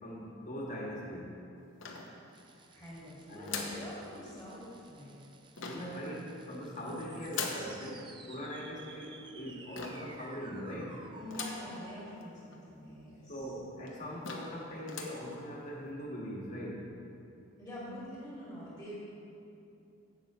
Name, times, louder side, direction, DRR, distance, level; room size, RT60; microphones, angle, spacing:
voice 1, 0.0-1.3 3.3-3.7 5.6-11.0 13.3-16.9, equal, 35° left, -4 dB, 1.6 m, -41 dB
sound 1, 1.8-2.6 3.5-3.9 5.6-6.0 7.3-7.7 9.8-10.1 11.3-11.7 12.2-12.3 12.5-12.6 13.4-13.5 13.9-14.0 14.2-14.6 14.9-15.2, left 4 dB, 65° left, 1.0 m, -40 dB
sound 2, 2.3-12.1, right 4 dB, 20° right, 0.4 m, -55 dB
voice 2, 2.7-5.1 6.8-7.0 11.2-13.5 17.6-19.0, left 1 dB, 5° left, -9 dB, 2.2 m, -46 dB
10.5 x 8.5 x 3.1 m, 2.8 s
head